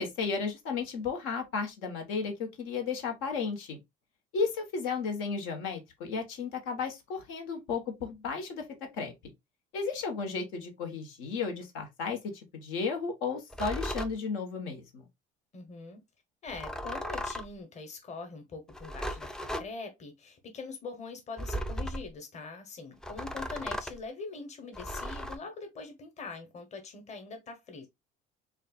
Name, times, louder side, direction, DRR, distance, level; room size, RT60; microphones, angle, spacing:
voice 1, 0.0-3.8 4.3-8.6 8.9-9.3 9.7-12.2 12.5-15.0, left 5 dB, 85° left, 1.4 m, -34 dB
sound 1, 13.5-14.1 16.5-17.6 18.7-19.7 21.4-22.1 23.0-24.0 24.7-25.4, equal, 5° left, 0.3 m, -36 dB
voice 2, 15.5-16.0 16.4-27.9, left 4 dB, 35° left, 1.1 m, -43 dB
6.4 x 2.5 x 2.4 m
cardioid pair, 120°, 21 cm